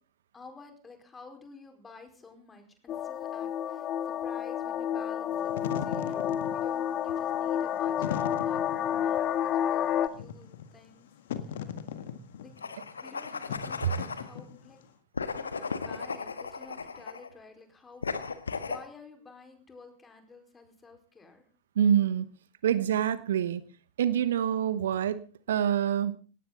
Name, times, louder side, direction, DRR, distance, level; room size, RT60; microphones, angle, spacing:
voice 1, 0.3-9.3 9.7-11.1 11.4-11.6 12.4-12.5 13.0-14.8 15.2-18.1 18.6-21.5, left 4 dB, 15° left, 5 dB, 4.7 m, -51 dB
sound 1, 2.9-10.1, left 10 dB, 30° left, 1.5 m, -30 dB
Wind / Fire, 5.3-14.8, left 8 dB, 55° left, 1.7 m, -39 dB
sound 2, 12.6-14.3 15.1-17.3 18.0-18.8, left 5 dB, 75° left, 1.4 m, -36 dB
voice 2, 21.8-22.3 22.6-23.6 24.0-26.2, right 9 dB, 60° right, 16 dB, 1.0 m, -26 dB
19.5 x 18.0 x 4.0 m, 0.38 s
figure-of-eight pair, 90°, 0 cm